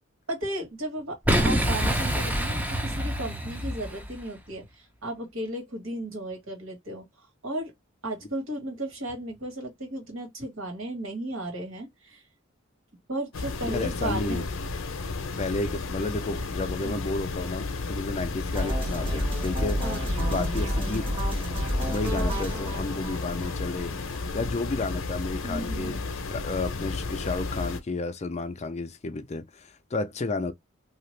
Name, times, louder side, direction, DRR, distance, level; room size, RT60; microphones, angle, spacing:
voice 1, 0.3-4.6 5.0-7.0 7.4-7.7 8.0-12.2 13.1-14.5 16.8-16.9 19.8-20.1 25.4-26.0, right 1 dB, 80° right, 1.8 m, -34 dB
Boom, 1.2-4.2, equal, 10° right, 0.6 m, -26 dB
sound 1, 13.3-27.8, left 3 dB, 85° left, 0.7 m, -33 dB
voice 2, 13.7-14.5 15.4-19.8 20.3-21.1 21.9-23.9 24.3-26.0 26.3-30.5, left 3 dB, 35° left, 0.5 m, -32 dB
sound 2, 18.5-24.5, equal, 25° right, 1.4 m, -30 dB
2.9 x 2.4 x 3.1 m
head